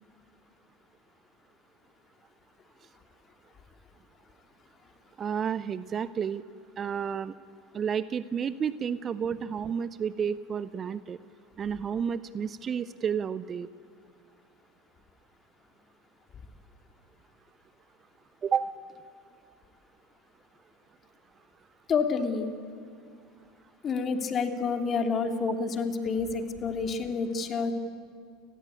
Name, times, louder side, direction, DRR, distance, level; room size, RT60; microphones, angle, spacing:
voice 1, 5.2-6.4 6.8-7.3 7.7-11.2 11.6-13.7 18.4-18.7, right 7 dB, 30° right, 17 dB, 0.7 m, -31 dB
voice 2, 21.9-22.5 23.8-27.7, left 5 dB, 35° left, 5 dB, 2.8 m, -28 dB
30.0 x 19.5 x 8.5 m, 2.2 s
figure-of-eight pair, 75°, 0 cm